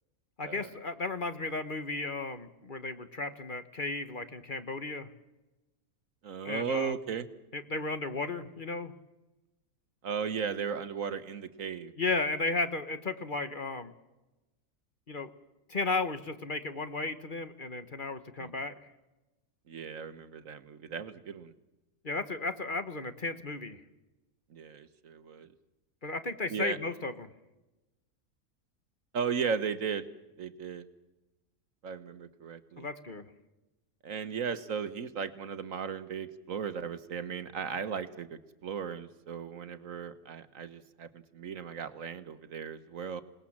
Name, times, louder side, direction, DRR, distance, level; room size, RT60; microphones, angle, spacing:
voice 1, 0.4-5.1 6.4-6.9 7.5-8.9 12.0-13.9 15.1-15.3 15.7-18.7 22.0-23.8 26.0-27.3 32.8-33.2, left 3 dB, 35° left, 10 dB, 1.3 m, -34 dB
voice 2, 6.2-7.3 10.0-11.9 18.4-18.5 19.7-21.5 24.5-25.5 26.5-26.8 29.1-30.1 30.4-30.9 31.8-32.9 34.0-43.2, right 6 dB, 65° right, 12 dB, 1.5 m, -36 dB
27.0 x 19.5 x 7.4 m, 1.0 s
omnidirectional pair, 1.5 m